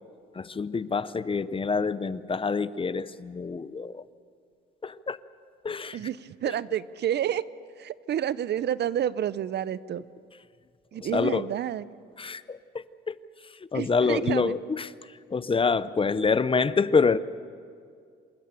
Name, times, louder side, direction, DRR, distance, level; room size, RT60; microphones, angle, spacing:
voice 1, 0.3-4.0 4.8-5.2 5.6-6.0 11.0-11.5 12.2-13.2 13.4-17.2, left 5 dB, 25° left, 16 dB, 0.7 m, -27 dB
voice 2, 5.9-7.5 7.8-10.0 10.9-11.8 13.7-14.6, right 10 dB, 60° right, 18 dB, 0.6 m, -29 dB
27.0 x 13.5 x 8.9 m, 2.2 s
cardioid pair, 90°, 20 cm